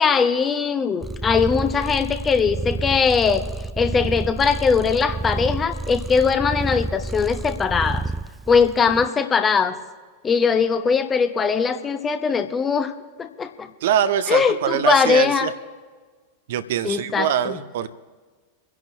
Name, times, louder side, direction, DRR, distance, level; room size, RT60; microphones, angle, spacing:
voice 1, 0.0-3.4 3.8-8.0 8.5-9.8 10.2-12.9 13.2-13.7 14.3-15.5 16.8-17.6, left 5 dB, 20° left, 9 dB, 0.9 m, -20 dB
Purr, 1.0-9.1, right 3 dB, 10° right, 0.6 m, -30 dB
voice 2, 13.8-15.5 16.5-17.9, right 9 dB, 55° right, 12 dB, 0.6 m, -23 dB
29.5 x 11.0 x 2.7 m, 1.4 s
figure-of-eight pair, 90°, 0 cm